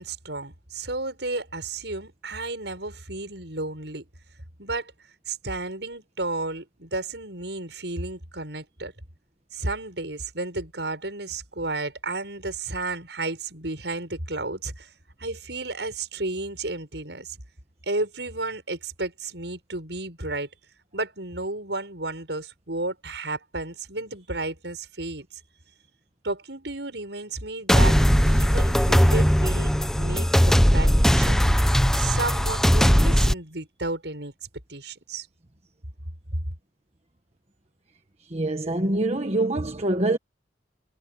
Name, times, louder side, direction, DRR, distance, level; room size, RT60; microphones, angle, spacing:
voice 1, 0.0-4.1 4.6-4.9 5.3-8.9 9.5-14.9 15.2-17.4 17.9-20.5 20.9-25.4 26.2-34.3 34.7-35.3 36.3-36.4, right 2 dB, 75° right, 7.4 m, -32 dB
sound 1, 27.7-33.3, equal, 5° left, 1.1 m, -19 dB
voice 2, 38.3-40.2, right 2 dB, 35° right, 1.4 m, -24 dB
head